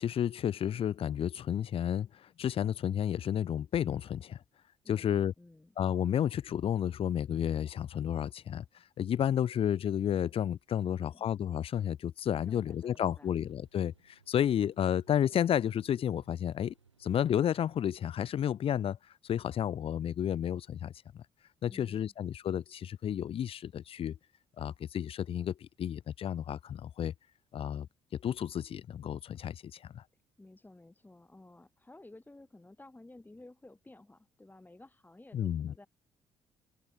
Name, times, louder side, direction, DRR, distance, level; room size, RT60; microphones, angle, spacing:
voice 1, 0.0-4.4 4.9-5.3 5.8-8.6 9.0-16.7 17.0-19.0 19.2-21.2 21.6-24.2 24.6-27.1 27.5-27.9 28.2-30.0 35.3-35.7, left 9 dB, 40° left, 0.6 m, -31 dB
voice 2, 4.8-5.7 10.8-11.2 12.3-13.3 21.6-22.1 30.4-35.9, left 2 dB, 10° left, 2.4 m, -54 dB
sound 1, 12.4-17.9, right 5 dB, 85° right, 5.3 m, -67 dB
figure-of-eight pair, 45°, 14 cm